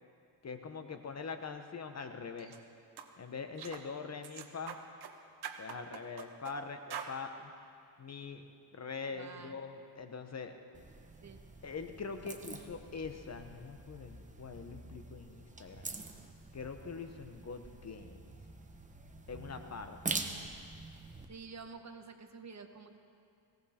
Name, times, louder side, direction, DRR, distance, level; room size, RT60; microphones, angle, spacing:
voice 1, 0.4-2.5 3.2-4.8 5.6-7.5 8.0-8.4 8.7-10.6 11.6-15.9 16.5-18.2 19.3-20.3, left 5 dB, 35° left, 7 dB, 1.0 m, -43 dB
sound 1, 2.4-2.6 3.0-3.1 3.6-3.9 4.2-5.1 5.4-6.6 6.9-7.1, right 8 dB, 60° right, 1.2 m, -44 dB
voice 2, 9.1-9.6 11.2-11.4 21.3-23.0, right 5 dB, 40° right, 6 dB, 1.1 m, -49 dB
sound 2, 10.7-21.3, right 3 dB, 15° right, 1.0 m, -45 dB
18.5 x 17.0 x 4.3 m, 2.5 s
cardioid pair, 130°, 43 cm